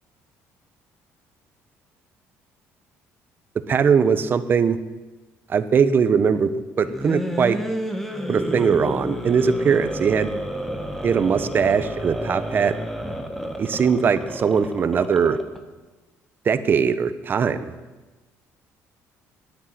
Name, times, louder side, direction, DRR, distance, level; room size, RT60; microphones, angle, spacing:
voice 1, 3.5-4.8 5.5-7.6 8.3-10.3 11.0-12.8 13.6-15.4 16.4-17.7, right 6 dB, 40° right, 12 dB, 0.9 m, -20 dB
sound 1, 6.8-15.6, equal, 5° left, 1.3 m, -30 dB
10.0 x 10.0 x 9.8 m, 1.2 s
cardioid pair, 125°, 6 cm